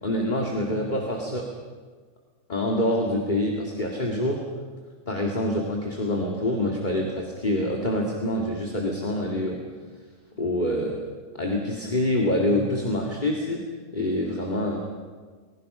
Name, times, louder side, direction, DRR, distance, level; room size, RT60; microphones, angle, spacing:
voice 1, 0.0-1.5 2.5-4.4 5.1-9.6 10.4-11.0 11.4-13.6 13.9-14.8, left 1 dB, 30° left, 0 dB, 2.6 m, -26 dB
29.5 x 21.5 x 5.7 m, 1.5 s
omnidirectional pair, 1.5 m